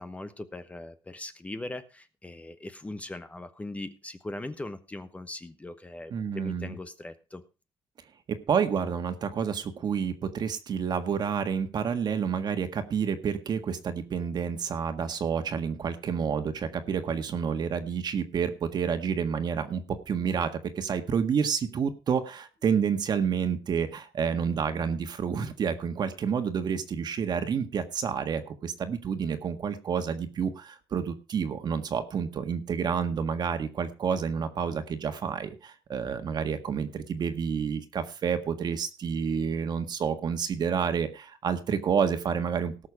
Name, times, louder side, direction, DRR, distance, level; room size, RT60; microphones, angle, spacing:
voice 1, 0.0-7.4, left 2 dB, 15° left, 10 dB, 0.9 m, -40 dB
voice 2, 6.1-6.8 8.3-42.7, right 7 dB, 45° right, 8 dB, 1.7 m, -29 dB
18.0 x 6.5 x 4.8 m, 0.33 s
cardioid pair, 120°, 10 cm